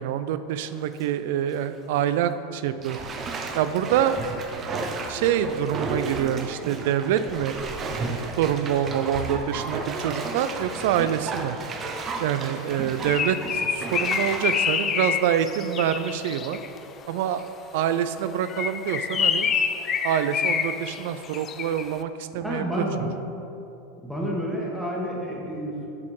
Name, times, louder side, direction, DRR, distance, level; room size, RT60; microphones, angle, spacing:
voice 1, 0.0-3.0 3.5-4.2 5.1-7.6 8.4-11.6 12.2-16.6 17.1-17.4 17.7-19.5 20.0-22.7, right 10 dB, 70° right, 12 dB, 0.4 m, -26 dB
Bathtub (filling or washing), 0.6-1.1 1.5-1.6 2.8-15.9 16.4-16.5, right 3 dB, 25° right, 0.7 m, -33 dB
Bird, 12.7-16.8 18.4-21.9, left 7 dB, 30° left, 0.4 m, -27 dB
voice 2, 22.4-23.1 24.0-25.9, equal, 5° right, -4 dB, 1.4 m, -29 dB
7.2 x 4.3 x 6.5 m, 2.9 s
supercardioid pair, 140°, 0 cm